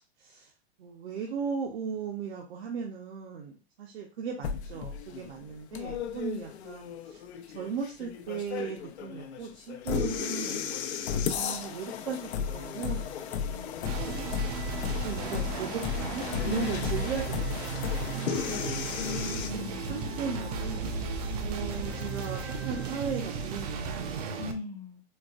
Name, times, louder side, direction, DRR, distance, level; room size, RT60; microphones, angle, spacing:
voice 1, 0.2-0.5 0.8-7.2 7.5-14.3 15.0-18.9 19.5-19.6 19.9-21.0 21.4-24.5, right 6 dB, 65° right, -1 dB, 0.8 m, -37 dB
sound 1, 4.4-19.5, left 7 dB, 80° left, 0.6 m, -34 dB
sound 2, 13.6-23.1, left 7 dB, 55° left, 0.7 m, -43 dB
sound 3, 13.8-24.5, right 6 dB, 40° right, 0.4 m, -35 dB
voice 2, 16.4-17.0 18.9-19.9 24.4-25.0, left 4 dB, 10° left, -1 dB, 0.5 m, -37 dB
4.3 x 2.1 x 2.4 m, 0.30 s
supercardioid pair, 150°, 33 cm